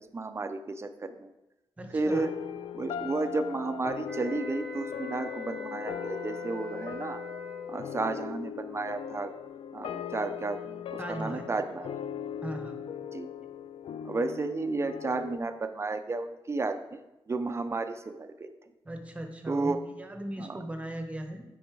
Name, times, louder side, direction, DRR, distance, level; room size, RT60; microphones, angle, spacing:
voice 1, 0.1-1.3 1.9-2.3 2.7-7.2 7.7-9.3 9.7-11.9 13.1-13.3 14.0-17.0 17.3-18.5 19.5-19.8 20.4-20.6, right 3 dB, 30° right, 9 dB, 0.6 m, -32 dB
voice 2, 1.8-2.3 11.0-11.5 12.4-12.8 18.8-21.4, right 1 dB, 15° right, 5 dB, 1.0 m, -38 dB
sound 1, 2.1-15.4, left 9 dB, 85° left, 0.4 m, -39 dB
sound 2, 4.0-8.0, left 3 dB, 5° left, 1.5 m, -40 dB
8.6 x 5.5 x 4.7 m, 0.97 s
wide cardioid pair, 115°, 9 cm